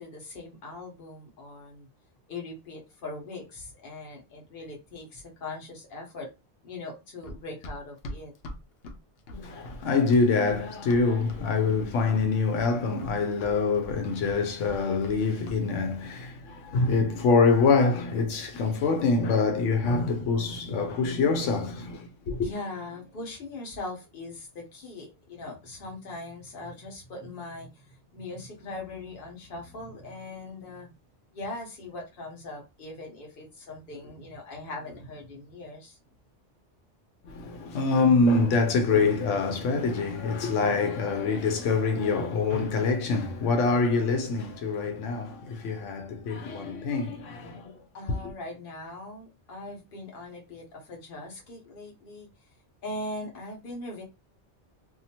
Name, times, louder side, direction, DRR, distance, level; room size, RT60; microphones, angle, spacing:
voice 1, 0.0-1.9 2.3-6.3 6.6-8.3 22.4-30.9 31.3-36.0 47.9-52.3 52.8-54.0, left 2 dB, 50° left, 1.0 m, -40 dB
Run, 7.2-11.5 11.7-12.3 12.6-15.2 15.5-15.6, left 1 dB, 65° left, 0.7 m, -42 dB
voice 2, 9.3-22.5 37.2-47.8, left 4 dB, 85° left, 0.9 m, -25 dB
2.7 x 2.3 x 2.8 m
omnidirectional pair, 1.2 m